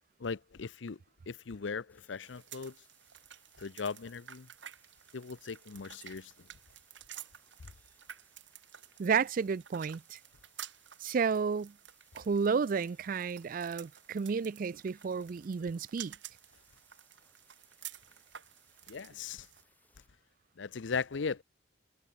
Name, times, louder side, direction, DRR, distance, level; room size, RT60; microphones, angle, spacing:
voice 1, 0.2-1.0 1.3-2.7 3.6-4.5 5.1-6.3 18.9-19.5 20.6-21.4, left 5 dB, 75° left, 0.6 m, -38 dB
sound 1, 1.9-20.1, left 2 dB, 10° left, 6.4 m, -70 dB
sound 2, 2.2-19.6, right 11 dB, 70° right, 2.0 m, -52 dB
voice 2, 9.0-10.2 11.0-11.7 12.1-16.1, right 5 dB, 45° right, 0.4 m, -32 dB
head